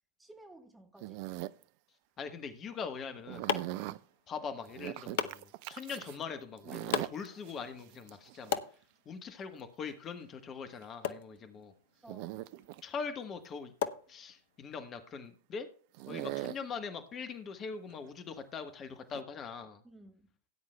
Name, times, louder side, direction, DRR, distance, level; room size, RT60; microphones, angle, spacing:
voice 1, 0.2-1.2 3.6-4.0 11.3-11.6 12.0-12.4 16.1-16.4 19.8-20.3, right 1 dB, 5° right, 1.4 m, -55 dB
sound 1, 1.0-1.6 3.3-4.0 4.7-6.2 6.6-8.6 10.8-10.9 12.1-12.8 15.9-16.6 17.9-18.1 19.1-19.2, right 17 dB, 45° right, 0.4 m, -41 dB
voice 2, 2.2-3.5 4.3-8.6 9.1-11.7 12.8-13.7 14.1-15.7 16.1-19.8, left 5 dB, 25° left, 1.2 m, -42 dB
sound 2, 2.8-14.7, left 8 dB, 55° left, 0.7 m, -41 dB
17.5 x 9.4 x 2.3 m
figure-of-eight pair, 90°, 0 cm